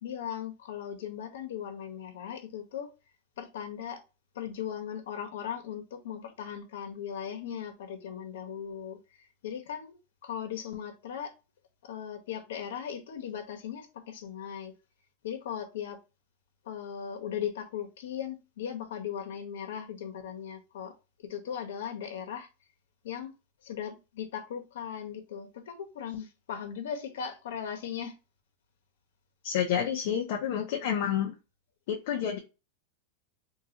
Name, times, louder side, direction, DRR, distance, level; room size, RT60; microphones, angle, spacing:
voice 1, 0.0-2.9 3.4-4.0 4.3-10.0 10.2-11.3 11.8-14.7 15.2-16.0 16.6-20.9 21.2-22.5 23.0-23.3 23.6-28.2, left 8 dB, 80° left, 1.0 m, -38 dB
voice 2, 29.4-31.3 31.9-32.4, left 9 dB, 60° left, 0.7 m, -29 dB
3.8 x 2.4 x 2.8 m
supercardioid pair, 160°, 0 cm